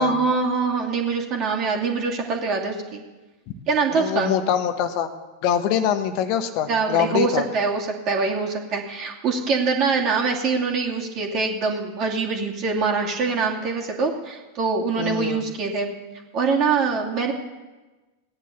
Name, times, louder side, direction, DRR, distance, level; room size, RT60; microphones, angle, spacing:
voice 1, 0.0-3.0 3.7-4.3 6.7-15.9 16.3-17.3, right 4 dB, 35° right, 0 dB, 2.6 m, -24 dB
voice 2, 3.9-5.1 5.4-7.4 15.0-15.4, left 9 dB, 45° left, 10 dB, 1.1 m, -24 dB
16.5 x 10.5 x 7.1 m, 1.2 s
figure-of-eight pair, 90°, 0 cm